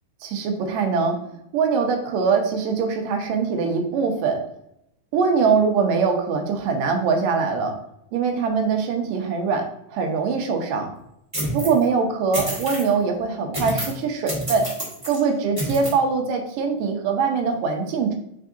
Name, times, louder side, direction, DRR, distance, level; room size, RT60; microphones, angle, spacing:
voice 1, 0.2-1.2 1.5-4.4 5.1-7.8 8.1-9.7 9.9-10.9 11.5-14.7 15.1-18.1, right 5 dB, 85° right, 3 dB, 2.4 m, -22 dB
sound 1, 11.3-11.8 12.3-12.9 13.5-14.0 14.3-15.2 15.6-15.9, equal, 40° right, 0.4 m, -28 dB
4.6 x 4.6 x 2.6 m, 0.78 s
omnidirectional pair, 3.7 m